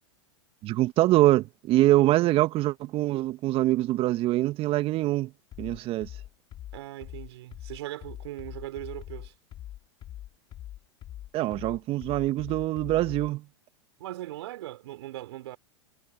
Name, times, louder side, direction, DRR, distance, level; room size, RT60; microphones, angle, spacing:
voice 1, 0.6-5.3 5.6-6.1 11.3-13.4, right 16 dB, 40° right, 1.8 m, -24 dB
sound 1, 5.5-13.4, left 12 dB, 35° left, 3.4 m, -42 dB
voice 2, 6.7-9.3 14.0-15.6, right 15 dB, 65° right, 4.9 m, -39 dB
hypercardioid pair, 100°, 15 cm